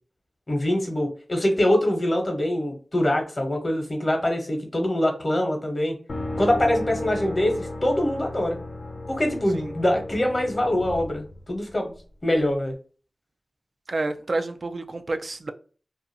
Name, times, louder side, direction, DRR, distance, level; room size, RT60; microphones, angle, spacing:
voice 1, 0.5-6.0 6.4-8.6 9.1-11.9 12.2-12.8, left 1 dB, 45° left, 0.9 m, -24 dB
sound 1, 6.1-12.0, left 2 dB, 70° left, 0.4 m, -34 dB
voice 2, 13.9-15.5, right 2 dB, 60° right, 0.3 m, -29 dB
2.5 x 2.3 x 2.7 m
cardioid pair, 45°, 0 cm